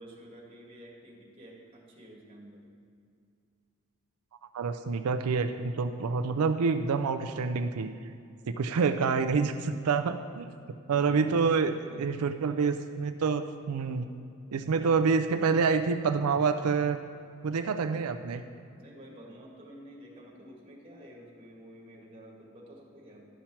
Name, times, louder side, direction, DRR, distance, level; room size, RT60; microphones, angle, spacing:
voice 1, 0.0-2.6 10.9-12.1 18.7-23.3, equal, 25° right, -3 dB, 1.6 m, -50 dB
voice 2, 4.5-7.9 8.6-10.5 10.9-11.7 12.0-14.1 14.5-17.0 17.4-18.4, right 5 dB, 80° right, 7 dB, 0.4 m, -27 dB
11.5 x 5.7 x 4.4 m, 2.4 s
head